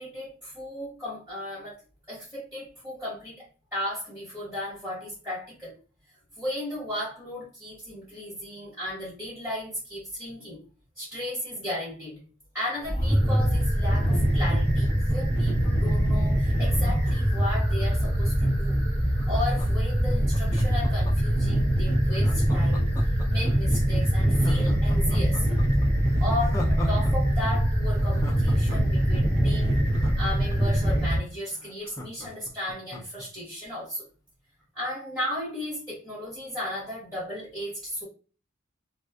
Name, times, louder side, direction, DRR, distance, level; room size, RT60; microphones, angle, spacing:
voice 1, 0.0-1.8 2.1-3.5 3.7-5.7 6.4-10.6 11.0-12.2 12.5-18.8 19.3-22.9 23.3-25.5 26.2-34.0 34.7-38.0, left 1 dB, 10° right, -10 dB, 1.1 m, -35 dB
sound 1, 12.8-31.2, equal, 35° right, 0.8 m, -23 dB
Laughter, 16.6-18.3 19.2-21.4 22.1-23.5 23.9-24.0 24.3-27.1 27.4-27.5 27.9-30.8 31.2-31.3 31.5-33.3 33.6-33.7, left 1 dB, 15° left, 0.4 m, -39 dB
2.5 x 2.4 x 2.3 m, 0.36 s
head